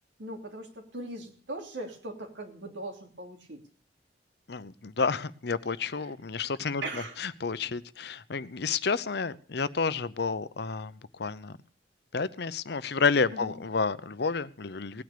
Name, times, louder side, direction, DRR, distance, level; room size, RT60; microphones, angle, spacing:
voice 1, 0.2-3.6 6.8-7.2 13.3-13.5, right 1 dB, 85° right, 3 dB, 3.1 m, -39 dB
voice 2, 4.5-11.5 12.1-15.0, left 4 dB, 65° left, 16 dB, 0.7 m, -30 dB
18.0 x 9.5 x 6.7 m, 0.44 s
head